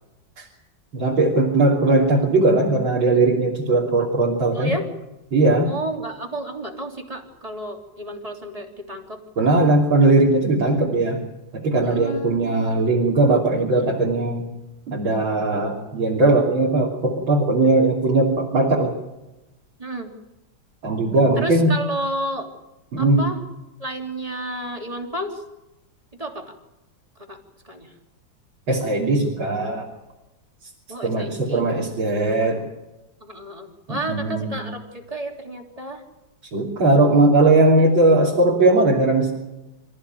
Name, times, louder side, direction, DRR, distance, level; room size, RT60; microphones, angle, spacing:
voice 1, 0.9-4.7 5.3-5.7 9.4-11.2 11.5-14.5 14.9-18.9 20.8-21.7 22.9-23.3 28.7-29.9 31.0-32.6 33.9-34.6 36.5-39.3, right 2 dB, 80° right, -3 dB, 3.9 m, -19 dB
voice 2, 4.5-4.9 5.6-9.2 11.8-12.7 19.8-20.1 21.3-22.5 23.0-23.4 23.8-25.4 26.2-26.5 27.2-27.4 27.6-27.9 30.9-31.6 33.2-36.0, right 1 dB, 15° right, 2 dB, 3.2 m, -31 dB
27.0 x 15.0 x 9.3 m, 0.99 s
omnidirectional pair, 2.1 m